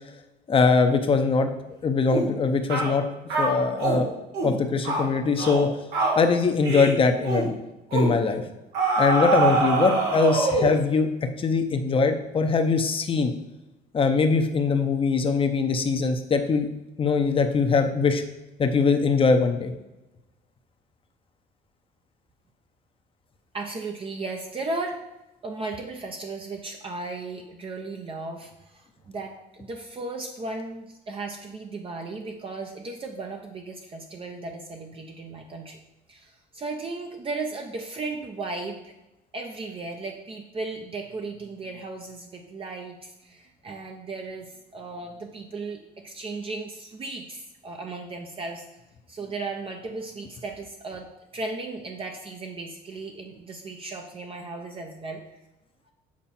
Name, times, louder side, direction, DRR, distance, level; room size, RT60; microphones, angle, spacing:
voice 1, 0.5-1.5 1.8-3.0 3.4-4.1 4.4-5.7 6.2-7.5 7.9-8.4 9.0-11.1 11.4-13.3 13.9-16.7 17.0-18.2 18.6-19.7, left 4 dB, 30° left, 6 dB, 0.8 m, -22 dB
sound 1, 2.1-2.3 2.7-2.9 3.3-4.0 4.3-4.6 4.8-5.1 5.4-5.7 5.9-6.2 6.6-6.9 7.2-7.5 7.9-8.1 8.7-10.8, right 3 dB, 90° right, 1.8 m, -24 dB
voice 2, 23.5-25.0 25.4-35.8 36.1-38.9 39.3-48.7 49.1-51.1 51.3-55.4, right 3 dB, 35° right, 2 dB, 0.7 m, -36 dB
7.4 x 4.5 x 4.3 m, 1.0 s
cardioid pair, 110°, 17 cm